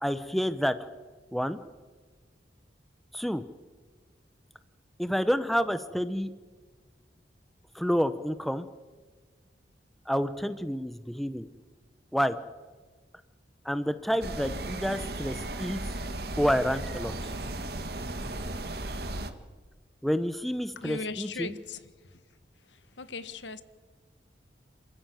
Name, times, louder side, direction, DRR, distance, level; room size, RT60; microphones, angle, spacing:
voice 1, 0.0-0.7 1.3-1.6 3.1-3.4 5.0-6.3 7.7-8.7 10.1-11.5 12.1-12.4 13.6-15.8 16.4-17.3 20.0-21.6, equal, ahead, 0.7 m, -29 dB
sound 1, 14.2-19.3, right 2 dB, 60° right, 1.6 m, -35 dB
voice 2, 20.8-21.9 22.7-23.6, left 3 dB, 85° left, 1.4 m, -38 dB
26.5 x 15.0 x 9.1 m
head